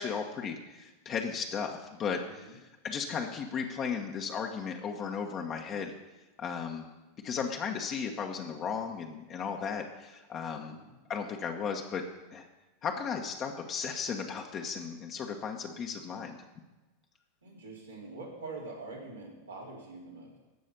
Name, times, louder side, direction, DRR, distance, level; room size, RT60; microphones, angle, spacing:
voice 1, 0.0-2.6 2.8-5.9 6.4-6.9 7.2-10.8 11.1-12.0 12.3-12.5 12.8-16.4, left 6 dB, 35° left, 2 dB, 1.2 m, -35 dB
voice 2, 2.2-2.5 10.6-10.9 17.4-20.4, right 3 dB, 85° right, -5 dB, 3.4 m, -44 dB
14.5 x 5.5 x 6.9 m, 1.1 s
figure-of-eight pair, 85°, 0 cm